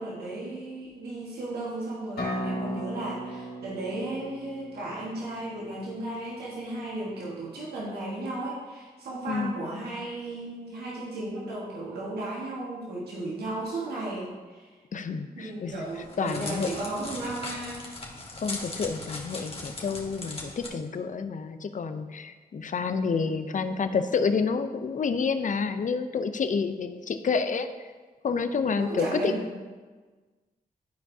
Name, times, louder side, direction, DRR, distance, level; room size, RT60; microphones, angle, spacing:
voice 1, 0.0-14.7 15.3-17.9 28.8-29.5, right 2 dB, 85° right, -5 dB, 1.5 m, -35 dB
sound 1, 2.2-5.9, equal, 70° left, 2.2 m, -36 dB
voice 2, 14.9-15.9 16.2-16.7 18.4-27.7 28.2-29.3, left 5 dB, 55° left, 9 dB, 0.6 m, -29 dB
Crackle, 15.7-20.7, left 2 dB, 35° left, 1.6 m, -39 dB
12.5 x 4.5 x 2.8 m, 1.4 s
cardioid pair, 55°, 16 cm